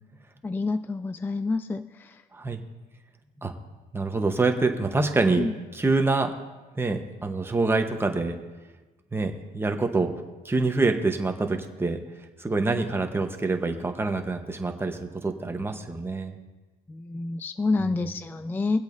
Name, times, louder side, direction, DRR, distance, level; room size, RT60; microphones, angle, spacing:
voice 1, 0.4-2.2 5.4-5.5 12.7-12.8 16.9-18.8, left 3 dB, 10° left, 11 dB, 0.3 m, -28 dB
voice 2, 3.9-5.5 5.7-6.3 6.7-8.4 9.1-10.1 10.4-12.0 12.4-16.4 17.8-18.1, right 3 dB, 15° right, 5 dB, 1.0 m, -26 dB
24.0 x 8.0 x 2.6 m, 1.2 s
cardioid pair, 110°, 17 cm